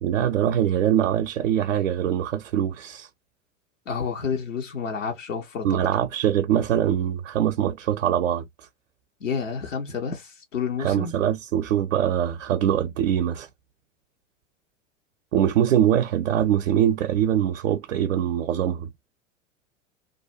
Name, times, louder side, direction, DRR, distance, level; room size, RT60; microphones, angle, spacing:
voice 1, 0.0-3.1 5.6-8.5 10.8-13.5 15.3-18.9, right 10 dB, 75° right, 0.5 m, -23 dB
voice 2, 3.9-5.8 9.2-11.1, left 6 dB, 85° left, 0.9 m, -30 dB
2.5 x 2.1 x 2.4 m
figure-of-eight pair, 85°, 37 cm